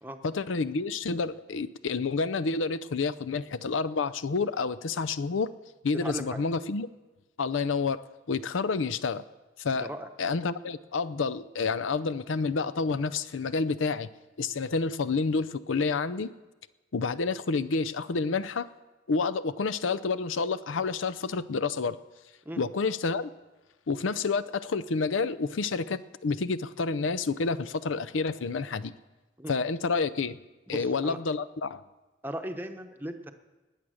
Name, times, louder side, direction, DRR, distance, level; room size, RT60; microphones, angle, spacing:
voice 1, 0.2-5.5 5.8-6.9 7.4-9.2 9.6-9.9 10.2-14.1 14.4-16.3 16.9-18.7 19.1-22.0 22.6-23.3 23.9-28.9 29.5-30.4 30.7-31.8, left 4 dB, 85° left, 14 dB, 0.6 m, -29 dB
voice 2, 5.9-6.4 9.7-10.1 22.4-22.6 29.4-29.5 30.7-31.2 32.2-33.3, right 1 dB, 10° right, 5 dB, 0.8 m, -37 dB
20.0 x 8.4 x 6.4 m, 1.1 s
head